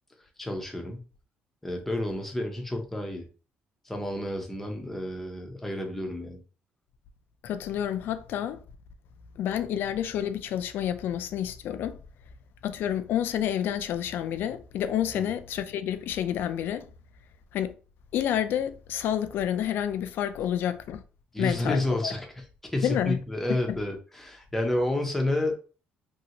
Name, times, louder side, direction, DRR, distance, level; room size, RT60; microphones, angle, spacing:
voice 1, 0.4-1.0 1.6-3.3 3.8-6.4 15.1-15.2 21.3-22.3 22.6-25.5, left 1 dB, 5° left, 0.7 m, -30 dB
voice 2, 7.4-8.6 9.4-12.0 12.6-16.9 17.5-17.7 18.1-21.0 21.4-22.1 22.8-23.2 23.5-23.8, left 10 dB, 65° left, 0.3 m, -29 dB
3.0 x 2.7 x 2.8 m
cardioid pair, 150°, 4 cm